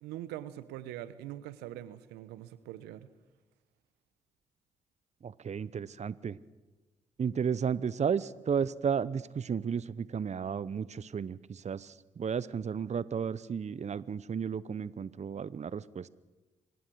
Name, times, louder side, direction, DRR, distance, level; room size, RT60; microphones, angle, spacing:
voice 1, 0.0-3.1, right 13 dB, 80° right, 15 dB, 0.9 m, -43 dB
voice 2, 5.2-6.4 7.2-16.1, right 7 dB, 45° right, 19 dB, 0.8 m, -33 dB
25.5 x 18.5 x 6.4 m, 1.2 s
hypercardioid pair, 40°, 17 cm